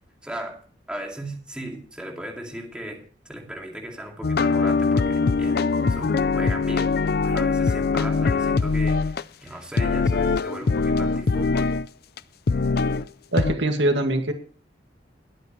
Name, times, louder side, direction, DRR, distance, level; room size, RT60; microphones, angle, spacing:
voice 1, 0.2-0.6 0.9-5.6 5.9-11.7, right 1 dB, 5° right, 0 dB, 2.4 m, -37 dB
sound 1, 4.2-9.2 9.8-11.9 12.2-12.3 12.5-13.0 13.4-13.5, left 4 dB, 60° left, 0.5 m, -22 dB
voice 2, 13.3-14.3, right 1 dB, 90° right, 5 dB, 2.1 m, -22 dB
21.0 x 8.3 x 3.1 m, 0.43 s
head